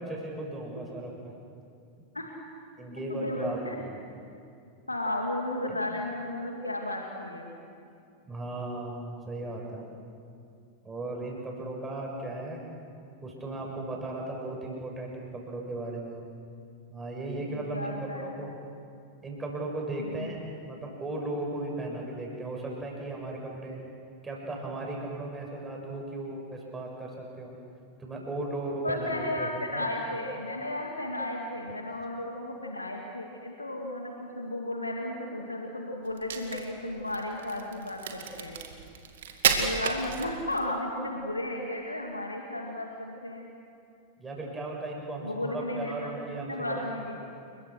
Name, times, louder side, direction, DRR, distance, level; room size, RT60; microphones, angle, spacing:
voice 1, 0.0-1.3 2.8-4.0 5.7-5.8 8.2-9.9 10.8-12.6 13.2-16.2 16.9-18.5 19.2-20.4 20.7-23.8 24.2-27.6 28.0-29.8 39.9-40.0 44.2-47.2, right 2 dB, 15° right, -1 dB, 7.1 m, -36 dB
voice 2, 3.1-3.8 4.9-7.6 17.5-18.3 20.0-20.3 28.8-38.6 39.6-43.5 45.2-46.1 46.4-47.2, left 1 dB, 85° left, 1 dB, 2.2 m, -34 dB
Crack, 36.1-40.7, right 7 dB, 60° right, 2.3 m, -31 dB
29.0 x 23.0 x 6.4 m, 2.5 s
figure-of-eight pair, 90°, 0 cm